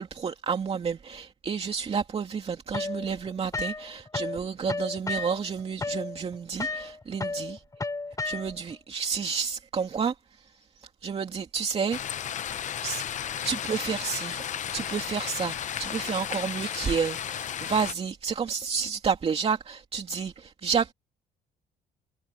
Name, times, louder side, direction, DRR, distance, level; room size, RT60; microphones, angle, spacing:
voice 1, 0.0-7.6 8.2-12.2 12.8-14.4 14.7-20.9, right 6 dB, 35° right, 2.5 m, -30 dB
sound 1, 2.7-4.4 4.7-8.7, left 3 dB, 20° left, 3.8 m, -33 dB
sound 2, 11.9-17.9, left 9 dB, 45° left, 0.8 m, -34 dB
cardioid pair, 110°, 17 cm